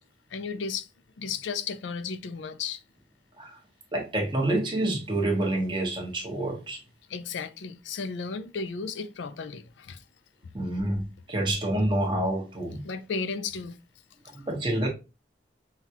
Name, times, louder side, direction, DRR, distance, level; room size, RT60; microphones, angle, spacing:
voice 1, 0.3-0.9 1.2-2.8 7.1-10.0 12.8-13.8 14.4-14.5, left 5 dB, 80° left, 0.4 m, -34 dB
voice 2, 3.9-6.8 10.5-12.8 14.2-14.9, right 1 dB, 25° right, 1.1 m, -28 dB
5.7 x 2.3 x 2.9 m
head